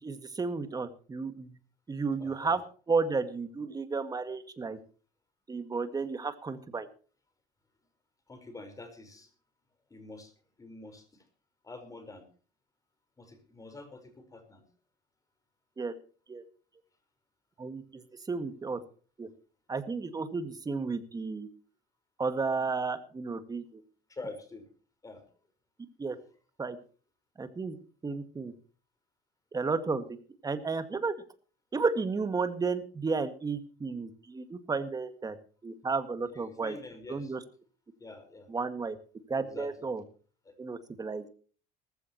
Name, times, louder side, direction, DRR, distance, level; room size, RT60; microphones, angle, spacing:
voice 1, 0.0-1.6 1.9-2.6 2.9-4.8 5.5-6.9 15.8-15.9 16.3-16.4 17.6-18.8 19.2-19.3 19.7-21.5 22.2-23.8 26.0-26.2 26.6-26.8 27.4-27.8 28.0-28.5 29.5-30.2 30.4-31.2 31.7-35.4 35.6-36.8 37.1-37.4 38.5-39.0 39.3-40.0 40.6-41.3, right 4 dB, 20° right, 10 dB, 1.9 m, -32 dB
voice 2, 2.2-2.6 8.3-9.3 9.9-10.3 10.6-11.2 11.6-12.2 13.2-14.6 24.1-24.7 25.0-25.2 36.3-37.3 38.0-38.5 39.4-39.7 40.4-40.5 41.2-41.3, left 2 dB, 20° left, 8 dB, 4.6 m, -46 dB
18.5 x 15.0 x 3.0 m, 0.39 s
cardioid pair, 120°, 18 cm